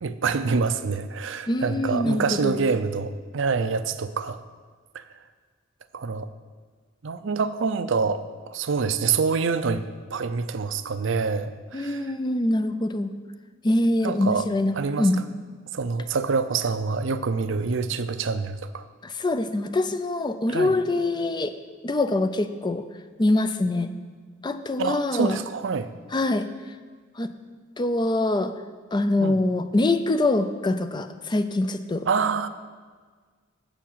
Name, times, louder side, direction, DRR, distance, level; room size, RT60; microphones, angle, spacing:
voice 1, 0.0-4.4 4.9-5.0 5.9-6.3 7.0-9.9 10.1-12.1 14.0-14.5 14.8-15.1 15.7-18.8 20.5-20.7 24.8-25.9 29.2-29.4 32.1-32.5, right 5 dB, 65° right, 12 dB, 0.5 m, -26 dB
voice 2, 1.5-2.5 11.7-13.1 13.6-15.2 19.0-21.5 21.8-22.8 23.2-23.9 24.4-25.4 26.1-26.5 27.2-27.3 27.8-28.5 28.9-32.1, left 2 dB, 20° left, 10 dB, 0.4 m, -24 dB
7.0 x 7.0 x 7.4 m, 1.5 s
head